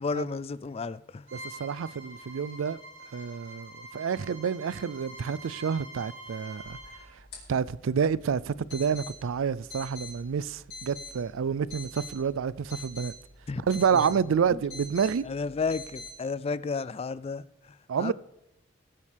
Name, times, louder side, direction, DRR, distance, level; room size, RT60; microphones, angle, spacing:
voice 1, 0.0-1.3 13.5-13.6 13.9-14.2 14.5-14.6 15.2-18.1, left 4 dB, 30° left, 0.4 m, -33 dB
Bowed string instrument, 1.3-7.1, right 1 dB, 70° right, 5.2 m, -46 dB
voice 2, 1.3-2.8 3.1-6.8 7.1-7.2 7.5-13.1 13.7-15.2 17.9-18.1, right 6 dB, 90° right, 0.4 m, -29 dB
sound 1, 6.6-16.1, left 2 dB, 60° left, 4.3 m, -46 dB
22.0 x 8.5 x 3.4 m
head